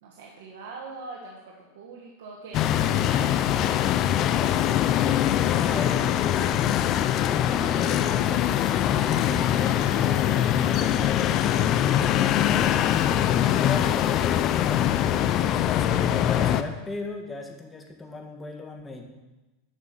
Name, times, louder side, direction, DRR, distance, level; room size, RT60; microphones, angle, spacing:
voice 1, 0.0-4.6 5.2-5.9, right 4 dB, 75° right, -1 dB, 1.7 m, -43 dB
sound 1, 2.5-16.6, left 11 dB, 40° left, 0.6 m, -23 dB
voice 2, 5.6-6.7 7.1-8.6 8.9-15.3 15.6-19.0, left 3 dB, 15° left, 2 dB, 1.8 m, -38 dB
11.0 x 6.1 x 7.3 m, 1.1 s
supercardioid pair, 125°, 0 cm